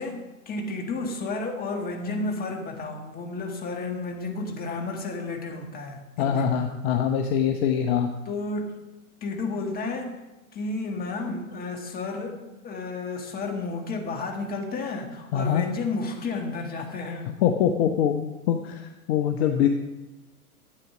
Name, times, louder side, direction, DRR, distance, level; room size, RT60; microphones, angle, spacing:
voice 1, 0.0-6.7 8.2-8.9 9.2-10.2 10.5-12.4 12.6-17.3, left 3 dB, 20° left, 3 dB, 1.8 m, -32 dB
voice 2, 6.2-8.1 15.3-15.6 17.4-19.7, left 8 dB, 45° left, 5 dB, 1.0 m, -23 dB
12.0 x 8.5 x 5.0 m, 1.0 s
hypercardioid pair, 110°, 44 cm